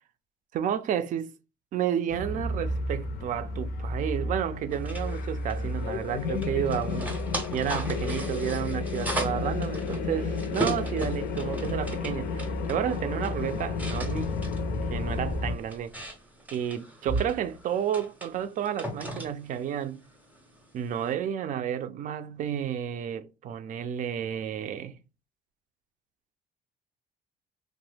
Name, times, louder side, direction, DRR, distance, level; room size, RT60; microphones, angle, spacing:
voice 1, 0.5-1.3 1.7-7.1 7.5-14.4 14.9-16.1 16.5-20.0 20.7-25.0, right 9 dB, 50° right, 0.4 m, -31 dB
sound 1, 2.1-15.6, left 3 dB, 65° left, 0.5 m, -31 dB
sound 2, 4.7-21.1, right 1 dB, 10° right, 0.6 m, -38 dB
2.9 x 2.1 x 3.2 m
cardioid pair, 110°, 17 cm